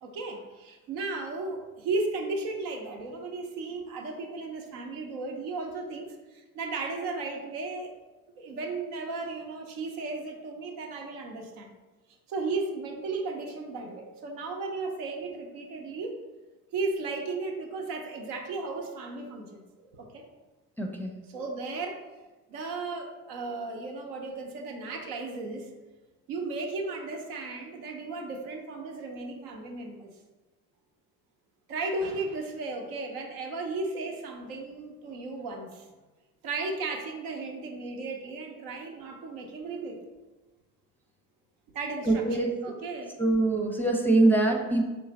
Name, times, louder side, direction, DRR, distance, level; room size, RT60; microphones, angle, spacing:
voice 1, 0.0-7.9 8.4-11.7 12.3-16.2 16.7-20.2 21.3-22.0 22.5-25.7 26.3-30.1 31.7-35.9 36.4-40.0 41.7-43.1, right 3 dB, 65° right, 2 dB, 0.8 m, -35 dB
voice 2, 20.8-21.1 42.1-42.5 43.2-44.8, right 2 dB, 5° left, 0 dB, 0.6 m, -23 dB
3.6 x 3.2 x 3.9 m, 1.2 s
figure-of-eight pair, 50°, 41 cm